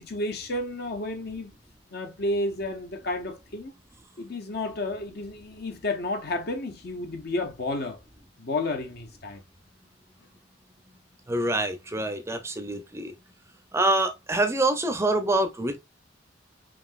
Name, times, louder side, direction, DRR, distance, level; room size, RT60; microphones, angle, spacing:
voice 1, 0.0-1.5 1.9-3.7 4.2-8.0 8.4-9.4, left 2 dB, 55° left, 0.8 m, -31 dB
voice 2, 11.3-13.2 13.7-15.8, right 2 dB, 15° right, 0.6 m, -26 dB
5.0 x 2.9 x 2.5 m
head